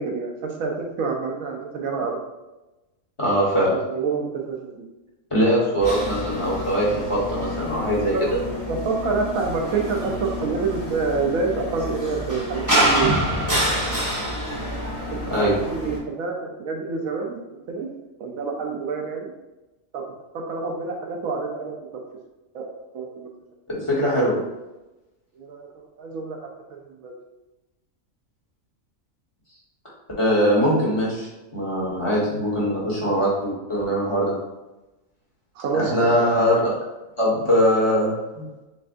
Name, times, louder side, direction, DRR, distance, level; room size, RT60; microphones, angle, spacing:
voice 1, 0.0-2.2 3.9-4.8 8.1-13.2 15.1-17.4 17.7-17.9 18.2-19.2 19.9-20.0 20.3-22.0 22.5-23.3 25.4-25.7 26.0-26.4 26.7-27.1 35.6-35.9 36.2-36.3, right 4 dB, 90° right, 1 dB, 1.2 m, -27 dB
voice 2, 3.2-3.7 5.3-8.1 15.3-15.5 23.7-24.4 30.2-34.3 35.7-36.7 37.2-38.4, equal, 25° left, -8 dB, 1.3 m, -21 dB
sound 1, 5.8-16.0, equal, 15° right, 0.8 m, -27 dB
6.5 x 2.4 x 2.5 m, 1.0 s
omnidirectional pair, 1.4 m